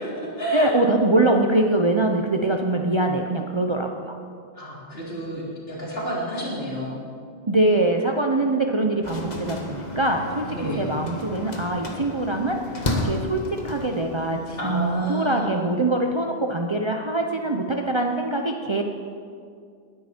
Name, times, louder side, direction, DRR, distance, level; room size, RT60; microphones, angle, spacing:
voice 1, 0.0-0.8 4.5-5.4 5.7-7.0 9.2-9.6 10.5-10.9 14.6-15.5, right 1 dB, 60° left, -7 dB, 4.1 m, -30 dB
voice 2, 0.5-4.2 7.5-18.8, right 2 dB, 30° right, 3 dB, 0.7 m, -23 dB
sound 1, 9.0-15.0, left 1 dB, 40° left, 1.6 m, -32 dB
19.0 x 10.5 x 4.5 m, 2.3 s
omnidirectional pair, 1.1 m